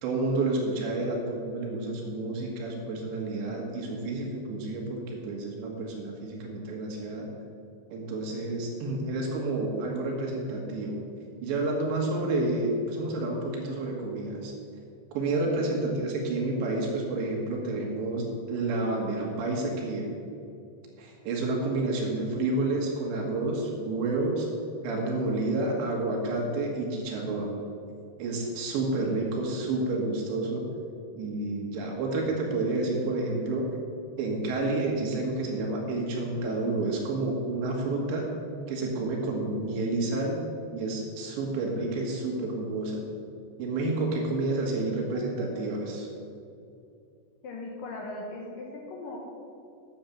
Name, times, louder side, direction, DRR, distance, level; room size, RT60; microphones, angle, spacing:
voice 1, 0.0-7.3 7.9-11.0 11.4-14.5 15.1-20.1 21.0-24.5 24.8-27.5 28.2-30.6 31.2-33.7 34.2-38.3 38.7-40.4 40.7-43.0 43.6-46.1, right 2 dB, 80° right, 0 dB, 3.8 m, -30 dB
voice 2, 15.4-15.8 47.4-49.2, left 2 dB, 70° left, 0 dB, 2.2 m, -39 dB
9.8 x 6.6 x 7.3 m, 2.6 s
omnidirectional pair, 5.1 m